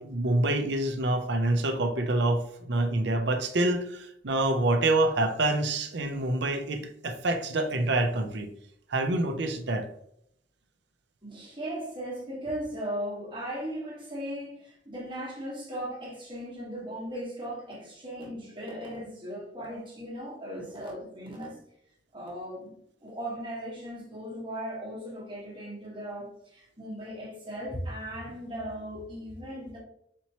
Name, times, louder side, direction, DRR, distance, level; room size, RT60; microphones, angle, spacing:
voice 1, 0.0-8.5 8.9-9.9, right 2 dB, 70° right, 0.6 m, -27 dB
voice 2, 11.2-21.6 22.1-22.7 23.0-29.8, equal, 25° right, 1.3 m, -37 dB
4.3 x 3.0 x 2.9 m
head